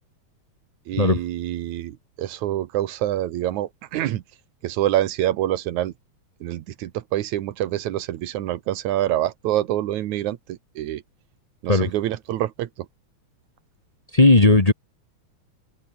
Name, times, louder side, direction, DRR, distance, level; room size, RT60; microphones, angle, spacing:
voice 1, 0.9-4.2 4.6-5.9 6.4-11.0 11.6-12.9, right 13 dB, 80° right, 2.4 m, -26 dB
voice 2, 14.1-14.7, left 2 dB, 30° left, 0.7 m, -15 dB
omnidirectional pair, 3.4 m